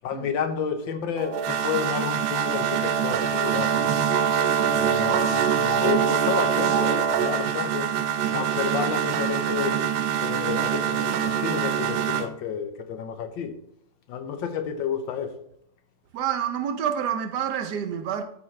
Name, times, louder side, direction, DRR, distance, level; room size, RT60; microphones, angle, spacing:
voice 1, 0.0-3.8 4.7-7.9 8.3-9.8 10.2-13.5 14.1-15.3, left 7 dB, 80° left, 1.5 m, -30 dB
sound 1, 1.2-12.3, right 8 dB, 90° right, 1.5 m, -24 dB
voice 2, 16.1-18.2, right 8 dB, 70° right, 1.1 m, -28 dB
12.5 x 4.9 x 3.2 m
omnidirectional pair, 2.1 m